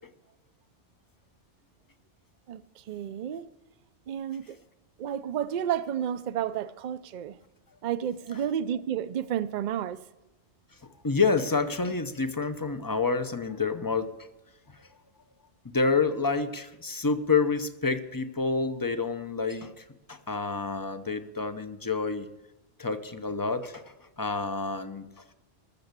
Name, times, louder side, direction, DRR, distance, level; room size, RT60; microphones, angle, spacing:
voice 1, 2.5-3.5 4.1-4.6 5.0-7.4 7.8-10.0, right 9 dB, 55° right, 0.6 m, -31 dB
voice 2, 11.0-14.1 14.7-14.9 15.7-22.3 22.8-25.1, left 4 dB, 25° left, 0.5 m, -28 dB
13.5 x 7.0 x 8.1 m
omnidirectional pair, 1.2 m